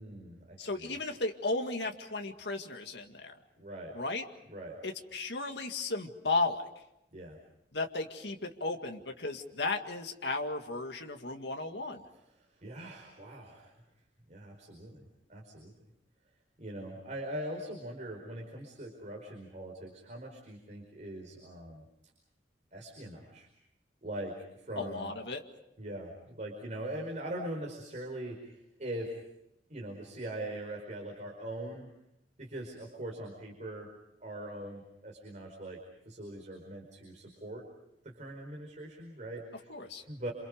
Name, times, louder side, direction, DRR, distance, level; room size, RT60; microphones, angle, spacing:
voice 1, 0.0-1.0 3.6-3.9 4.5-4.8 7.1-7.4 12.6-13.8 14.3-15.0 15.3-15.7 16.6-21.8 22.7-23.5 24.0-25.1 25.8-29.2 29.7-31.9 32.4-33.9 34.2-37.7 38.0-39.8 40.1-40.3, right 1 dB, 45° right, 0 dB, 4.9 m, -42 dB
voice 2, 0.6-3.3 3.9-4.3 4.8-6.7 7.7-12.0 24.8-25.4 39.7-40.0, left 3 dB, 70° left, 3 dB, 2.1 m, -35 dB
28.5 x 28.0 x 5.2 m, 0.86 s
head